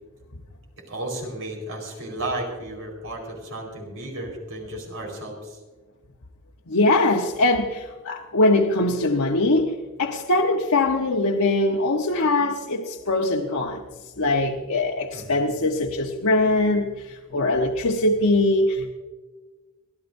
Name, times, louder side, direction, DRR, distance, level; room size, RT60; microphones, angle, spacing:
voice 1, 0.9-5.6 15.1-15.4, right 1 dB, 70° right, 0 dB, 4.6 m, -33 dB
voice 2, 6.7-13.8 14.2-18.9, left 2 dB, 85° left, 1 dB, 1.1 m, -22 dB
25.0 x 16.0 x 2.7 m, 1.3 s
head